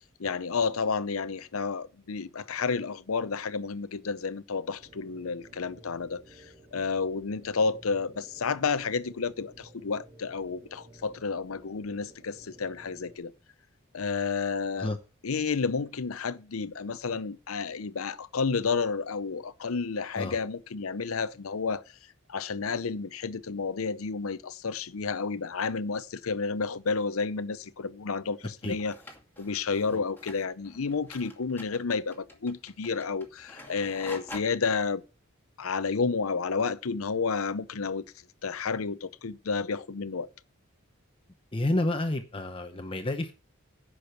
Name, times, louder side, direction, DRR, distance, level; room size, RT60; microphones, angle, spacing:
voice 1, 0.2-6.4 6.7-13.3 13.9-14.9 15.2-21.8 22.3-29.0 29.4-35.0 35.6-38.0 38.4-40.3, left 5 dB, 85° left, 0.7 m, -31 dB
sound 1, 4.8-13.2, right 1 dB, 35° right, 3.9 m, -54 dB
sound 2, 28.6-34.4, left 1 dB, 10° left, 2.5 m, -46 dB
voice 2, 41.5-43.3, left 1 dB, 25° left, 0.9 m, -29 dB
10.5 x 6.3 x 6.5 m
head